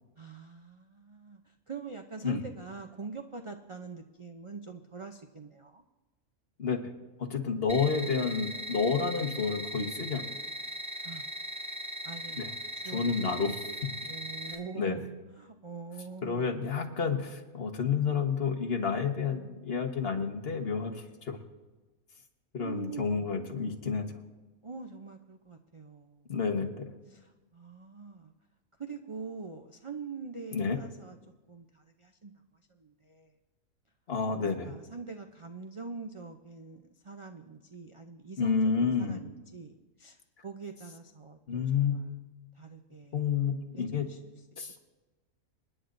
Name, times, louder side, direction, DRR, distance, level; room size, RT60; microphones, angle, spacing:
voice 1, 0.2-5.8 11.0-11.3 12.0-12.4 12.7-13.4 14.1-15.0 15.4-16.6 22.6-23.5 24.6-26.3 27.1-28.3 28.8-31.2 31.5-32.3 32.7-33.3 34.3-40.2 40.4-42.1 42.5-43.2 43.9-44.2 44.5-44.8, right 5 dB, 50° right, 5 dB, 0.3 m, -44 dB
voice 2, 6.6-6.9 7.2-10.3 12.4-12.5 12.9-13.6 14.8-15.0 16.2-21.4 22.5-24.1 26.3-26.9 30.5-30.8 34.1-34.7 38.4-39.2 41.5-42.3 43.1-44.0 44.6-44.8, left 5 dB, 50° left, 2 dB, 1.4 m, -30 dB
sound 1, 7.7-14.5, right 1 dB, 15° right, 1.7 m, -39 dB
28.5 x 10.0 x 2.6 m, 1.2 s
omnidirectional pair, 1.4 m